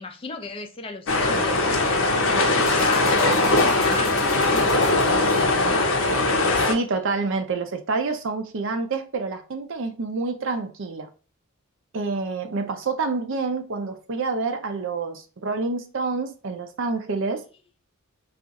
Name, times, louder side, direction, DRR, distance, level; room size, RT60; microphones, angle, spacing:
voice 1, 0.0-6.1, left 3 dB, 25° left, 0.4 m, -34 dB
sound 1, 1.1-6.7, left 2 dB, 65° left, 0.7 m, -20 dB
sound 2, 2.6-5.7 6.1-6.2, left 4 dB, 90° left, 1.0 m, -40 dB
voice 2, 5.5-5.8 6.6-11.1 11.9-17.4, right 3 dB, 60° right, 0.5 m, -28 dB
2.4 x 2.4 x 3.9 m
head